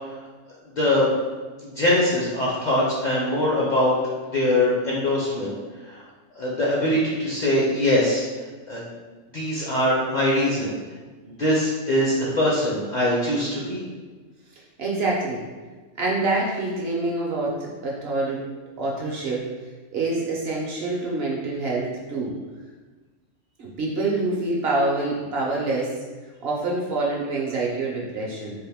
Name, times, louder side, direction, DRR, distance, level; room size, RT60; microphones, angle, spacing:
voice 1, 0.8-1.1 1.6-4.0 4.3-5.5 5.9-6.0 6.4-8.2 8.7-8.8 9.3-10.7 11.2-13.8, left 1 dB, 45° left, -6 dB, 0.6 m, -22 dB
voice 2, 14.8-15.4 15.9-18.4 18.8-19.5 19.9-22.3 23.6-25.9 26.4-28.5, right 2 dB, 60° right, -3 dB, 0.8 m, -26 dB
3.4 x 2.5 x 3.4 m, 1.3 s
omnidirectional pair, 1.3 m